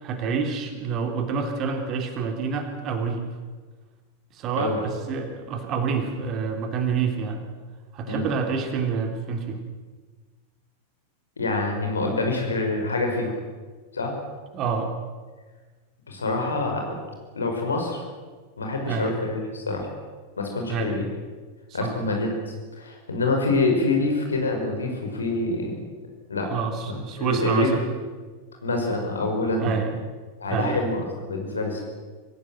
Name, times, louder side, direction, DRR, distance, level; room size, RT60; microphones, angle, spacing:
voice 1, 0.0-3.2 4.3-7.4 7.9-9.6 14.5-14.9 18.8-19.1 20.7-21.0 21.8-21.9 26.4-27.8 29.6-30.0 30.5-30.8, right 5 dB, 35° right, 6 dB, 3.1 m, -27 dB
voice 2, 11.4-13.3 13.9-14.1 16.1-17.0 17.3-18.0 18.6-19.9 20.4-21.1 21.7-25.8 26.3-26.5 26.8-27.7 28.6-29.8 30.4-31.8, left 2 dB, 75° left, 2 dB, 5.5 m, -26 dB
25.0 x 16.5 x 7.8 m, 1.4 s
figure-of-eight pair, 90°, 0 cm